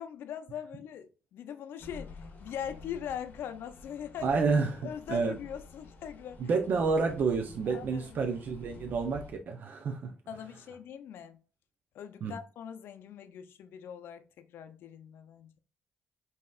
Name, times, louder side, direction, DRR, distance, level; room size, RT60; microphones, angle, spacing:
voice 1, 0.0-4.4 4.8-6.4 7.7-8.2 10.3-11.4 11.9-15.5, left 9 dB, 80° left, 0.4 m, -41 dB
sound 1, 1.8-9.3, left 3 dB, 50° left, 1.0 m, -50 dB
voice 2, 4.2-5.4 6.4-10.1 12.2-12.3, right 4 dB, 60° right, 0.5 m, -29 dB
5.2 x 2.8 x 2.3 m
cardioid pair, 110°, 4 cm